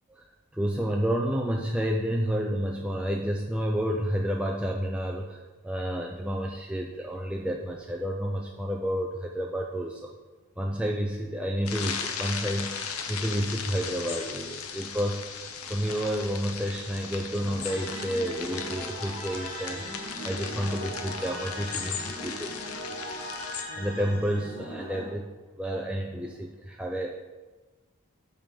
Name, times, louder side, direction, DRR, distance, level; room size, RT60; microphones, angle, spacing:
voice 1, 0.5-10.0 10.6-22.5 22.9-23.0 23.8-25.3 25.6-27.2, equal, 5° right, 0 dB, 0.4 m, -30 dB
sound 1, 11.7-23.6, left 6 dB, 80° left, 0.8 m, -37 dB
sound 2, 17.6-25.0, equal, 40° left, 2.3 m, -39 dB
5.5 x 5.4 x 6.7 m, 1.2 s
head